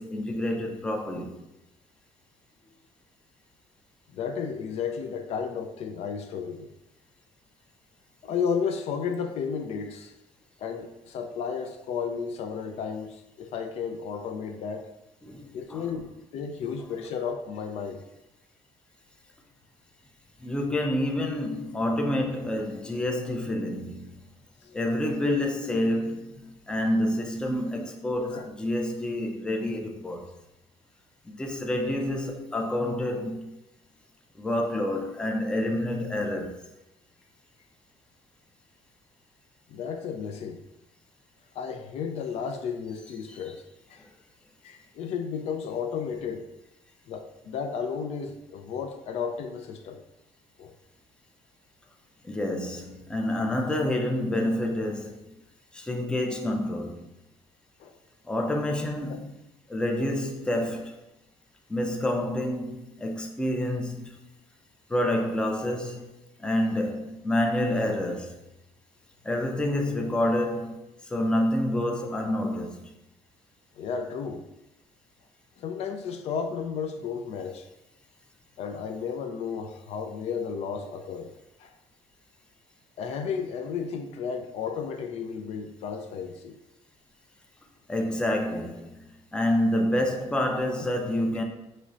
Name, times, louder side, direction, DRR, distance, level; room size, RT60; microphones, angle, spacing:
voice 1, 0.0-1.4 15.2-15.9 20.4-24.2 24.7-30.3 31.3-33.6 34.4-36.6 43.3-43.4 52.2-55.3 55.7-57.1 58.3-59.4 59.7-61.0 61.7-64.2 64.9-68.4 69.2-72.9 87.9-89.0 89.3-91.4, left 1 dB, 10° left, 0.4 m, -28 dB
voice 2, 4.1-6.7 8.2-10.1 10.6-14.9 15.5-18.0 24.6-24.8 28.2-28.5 39.7-40.6 41.5-43.6 43.9-44.0 44.6-46.5 47.1-50.0 50.6-50.7 57.8-57.9 59.1-59.2 73.8-74.4 75.6-77.7 78.6-81.3 81.6-81.7 83.0-86.6, left 6 dB, 65° left, 0.4 m, -33 dB
6.5 x 3.1 x 2.5 m
cardioid pair, 160°, 12 cm